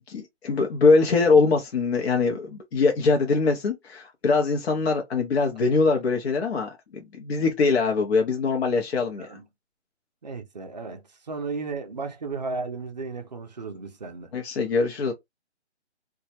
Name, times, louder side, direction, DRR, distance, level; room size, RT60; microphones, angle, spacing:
voice 1, 0.0-9.3 14.3-15.1, left 4 dB, 60° left, 0.7 m, -22 dB
voice 2, 9.0-9.4 10.2-14.3, right 4 dB, 40° right, 0.4 m, -34 dB
2.2 x 2.0 x 2.7 m
hypercardioid pair, 160°, 35 cm